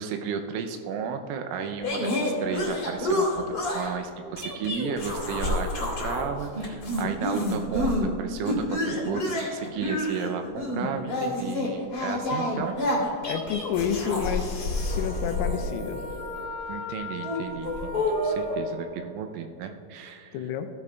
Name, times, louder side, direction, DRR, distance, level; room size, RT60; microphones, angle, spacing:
voice 1, 0.0-3.5 3.7-12.8 16.7-20.4, right 6 dB, 85° right, 6 dB, 2.9 m, -33 dB
sound 1, 1.8-3.9 4.4-6.3 6.5-8.1 8.4-16.4 17.2-18.5, left 1 dB, 25° left, 2.3 m, -28 dB
voice 2, 13.3-16.1 20.3-20.7, left 7 dB, 90° left, 7 dB, 3.3 m, -30 dB
Wind instrument woodwind instrument, 14.8-18.9, left 3 dB, 65° left, 2.3 m, -40 dB
16.0 x 11.0 x 2.3 m, 2.5 s
omnidirectional pair, 6.0 m